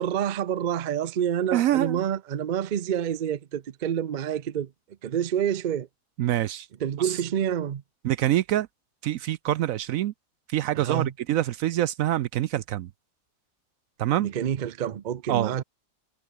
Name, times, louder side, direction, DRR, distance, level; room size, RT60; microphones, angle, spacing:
voice 1, 0.0-4.7 5.0-5.9 6.8-7.8 10.7-11.1 14.2-15.6, right 9 dB, 90° right, 0.4 m, -28 dB
voice 2, 1.5-2.0 6.2-6.7 8.0-8.7 9.0-10.1 10.5-12.9 14.0-14.3 15.3-15.5, right 13 dB, 70° right, 0.8 m, -25 dB
omnidirectional pair, 1.8 m